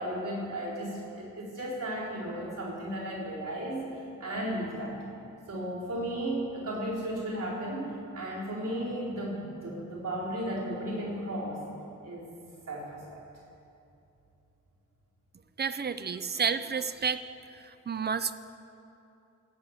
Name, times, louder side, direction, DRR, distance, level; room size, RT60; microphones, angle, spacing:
voice 1, 0.0-4.9 5.5-11.6 12.0-12.2 12.7-13.0, right 1 dB, 85° right, -7 dB, 4.3 m, -34 dB
voice 2, 15.6-17.2 17.9-18.3, right 6 dB, 35° right, 12 dB, 0.4 m, -30 dB
17.5 x 8.2 x 7.2 m, 2.8 s
wide cardioid pair, 180°, 31 cm